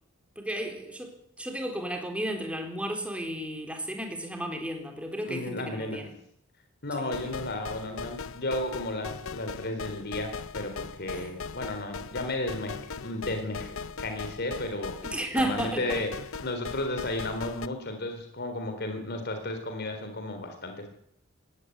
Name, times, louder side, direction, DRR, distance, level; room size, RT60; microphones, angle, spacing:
voice 1, 0.4-6.1 7.0-7.3 11.1-11.3 15.0-15.9, right 1 dB, 5° right, 3 dB, 4.0 m, -33 dB
voice 2, 5.3-6.0 6.8-16.1 16.4-20.9, left 1 dB, 50° left, 6 dB, 3.8 m, -34 dB
sound 1, 7.1-17.7, left 5 dB, 75° left, 0.8 m, -39 dB
17.5 x 16.5 x 9.9 m, 0.71 s
head